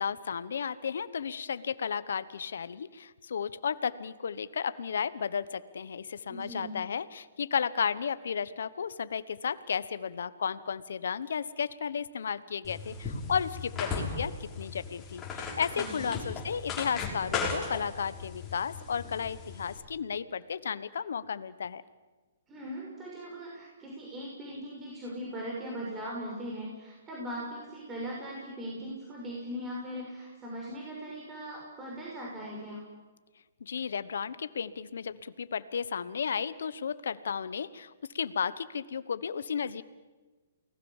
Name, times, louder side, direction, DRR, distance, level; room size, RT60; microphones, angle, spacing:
voice 1, 0.0-21.8 33.6-39.8, left 7 dB, 75° left, 15 dB, 1.2 m, -33 dB
voice 2, 6.3-6.7 15.7-16.1 22.5-32.8, equal, 15° right, -3 dB, 6.3 m, -39 dB
sound 1, 12.6-19.8, left 4 dB, 15° left, 5.7 m, -37 dB
29.0 x 19.5 x 7.4 m, 1.3 s
hypercardioid pair, 145°, 0 cm